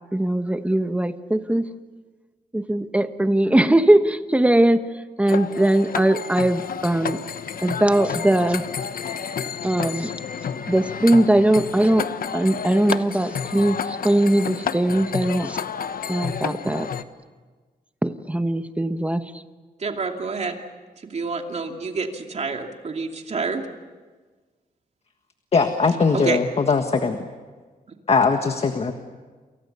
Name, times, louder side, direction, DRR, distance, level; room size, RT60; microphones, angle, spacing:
voice 1, 0.1-1.6 2.5-4.8 5.2-7.2 7.6-8.7 9.6-10.1 10.7-12.1 12.3-15.6 16.1-16.9 18.0-19.3, right 1 dB, 10° right, 9 dB, 1.2 m, -20 dB
sound 1, 5.3-17.0, left 7 dB, 70° left, 1.1 m, -30 dB
voice 2, 19.8-20.6 21.0-23.6 26.1-26.4, right 4 dB, 45° right, 3 dB, 2.7 m, -28 dB
voice 3, 25.5-27.2 28.1-28.9, left 4 dB, 40° left, 6 dB, 1.6 m, -20 dB
28.5 x 28.5 x 7.0 m, 1.4 s
wide cardioid pair, 145°, 16 cm